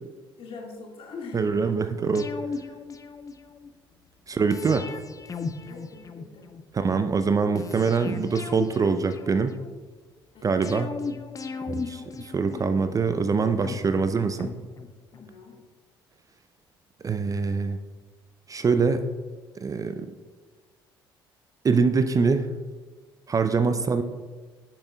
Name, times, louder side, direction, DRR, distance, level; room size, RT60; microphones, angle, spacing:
voice 1, 0.4-1.5 4.7-4.9 5.7-6.5 10.3-10.6 11.5-11.8 15.1-15.5 23.5-23.8, left 4 dB, 50° left, 0 dB, 1.9 m, -43 dB
voice 2, 1.3-2.3 4.3-4.9 6.7-9.6 10.4-10.9 11.7-14.5 17.0-17.8 18.5-19.1 19.6-20.1 21.6-22.5 23.3-24.0, right 5 dB, 30° right, 10 dB, 0.5 m, -24 dB
sound 1, 2.1-3.7 4.5-6.6 7.6-9.8 10.6-13.0 13.6-15.3 15.6-15.7, left 4 dB, 30° left, 0.6 m, -37 dB
9.6 x 7.1 x 2.3 m, 1.4 s
hypercardioid pair, 55°, 12 cm